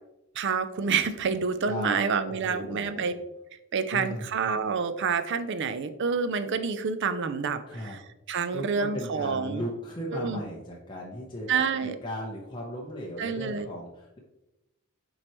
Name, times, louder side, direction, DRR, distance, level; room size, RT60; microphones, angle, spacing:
voice 1, 0.4-3.1 3.7-8.0 8.3-9.6 10.1-10.4 11.5-12.0 13.2-13.7, right 5 dB, 55° right, 11 dB, 0.5 m, -28 dB
voice 2, 1.7-2.0 2.3-3.1 3.9-4.3 7.7-8.0 8.5-14.2, equal, 20° left, -3 dB, 0.9 m, -37 dB
7.5 x 4.6 x 3.1 m, 0.95 s
head